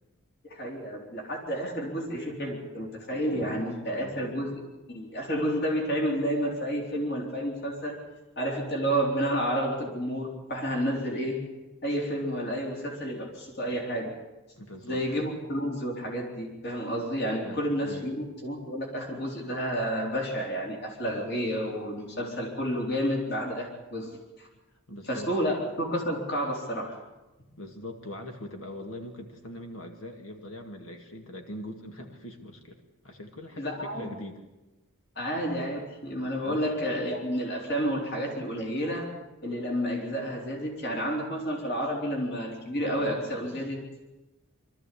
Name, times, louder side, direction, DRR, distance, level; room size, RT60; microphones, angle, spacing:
voice 1, 0.5-4.5 4.9-8.0 8.4-11.4 11.8-14.1 14.8-24.5 25.1-26.9 33.6-34.1 35.2-39.1 39.4-43.8, equal, 50° left, 0 dB, 3.9 m, -30 dB
voice 2, 14.6-15.0 17.4-18.1 24.9-25.6 27.6-32.8 33.0-34.4 36.4-36.7, left 1 dB, 65° left, 4 dB, 2.1 m, -42 dB
23.5 x 13.5 x 8.5 m, 1.1 s
head